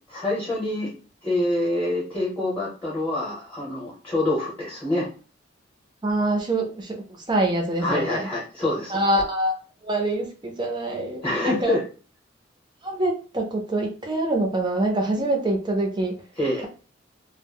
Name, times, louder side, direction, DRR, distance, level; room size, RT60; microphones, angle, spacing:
voice 1, 0.1-0.9 1.2-5.1 7.8-9.0 11.2-11.8 16.4-16.6, left 1 dB, 10° left, -5 dB, 0.9 m, -26 dB
voice 2, 6.0-8.3 8.9-9.5 9.8-11.8 12.8-16.2, right 1 dB, 25° right, 1 dB, 0.5 m, -25 dB
2.1 x 2.0 x 3.5 m, 0.37 s
head